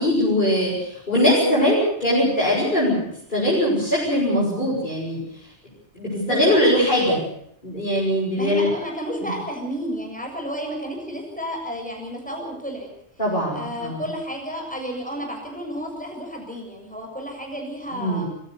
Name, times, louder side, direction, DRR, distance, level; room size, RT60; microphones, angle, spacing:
voice 1, 0.0-3.0 3.3-5.2 5.9-7.2 7.6-8.7 9.2-9.3 13.2-14.1 17.9-18.2, left 1 dB, 45° left, -8 dB, 8.1 m, -21 dB
voice 2, 6.2-6.6 8.4-12.9 13.5-18.2, equal, 5° left, 1 dB, 7.2 m, -31 dB
25.0 x 16.0 x 8.4 m, 0.72 s
omnidirectional pair, 1.2 m